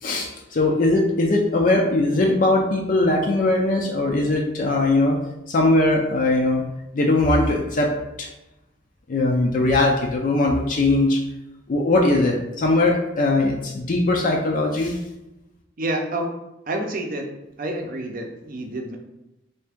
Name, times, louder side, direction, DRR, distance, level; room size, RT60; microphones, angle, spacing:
voice 1, 0.0-5.2 5.5-6.7 6.9-8.3 9.1-11.2 11.7-15.0, left 2 dB, 45° left, 0 dB, 0.4 m, -20 dB
voice 2, 15.8-16.3 16.6-17.3 17.6-19.0, right 1 dB, 50° right, 3 dB, 0.6 m, -28 dB
3.4 x 2.7 x 3.5 m, 0.92 s
head